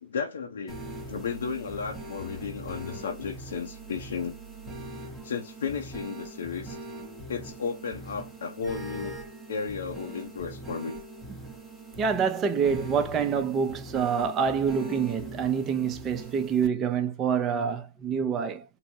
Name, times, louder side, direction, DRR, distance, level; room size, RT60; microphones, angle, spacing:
voice 1, 0.0-0.8 1.1-4.3 5.2-6.8 7.3-9.2 9.5-11.0, left 6 dB, 75° left, 0.6 m, -34 dB
sound 1, 0.7-16.7, right 1 dB, ahead, 0.8 m, -41 dB
voice 2, 12.0-18.6, right 6 dB, 25° right, 0.5 m, -26 dB
3.8 x 2.0 x 2.6 m
hypercardioid pair, 135°, 0 cm